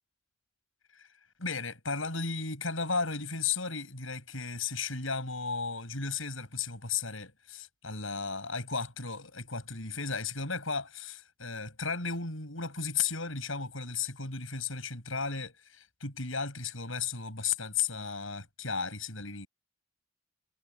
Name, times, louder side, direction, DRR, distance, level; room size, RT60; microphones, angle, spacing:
voice 1, 1.4-19.5, left 5 dB, 75° left, 7.4 m, -34 dB
head